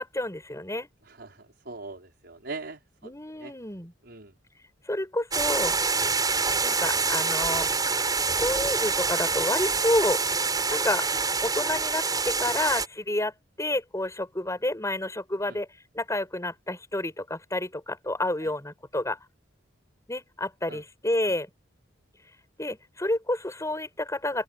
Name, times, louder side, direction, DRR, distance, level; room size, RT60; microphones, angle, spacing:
voice 1, 0.0-0.9 3.0-3.9 4.9-5.8 6.6-7.9 8.3-10.2 10.7-11.1 11.4-13.3 13.6-15.7 15.9-19.2 20.1-21.5 22.6-24.4, left 1 dB, 15° left, 5.5 m, -29 dB
voice 2, 1.1-3.1 3.4-3.5 4.0-4.3 15.5-15.6 18.4-18.5 20.7-20.8 21.3-21.4, right 3 dB, 60° right, 5.6 m, -41 dB
sound 1, 5.3-12.9, right 4 dB, 20° right, 6.3 m, -26 dB
open air
head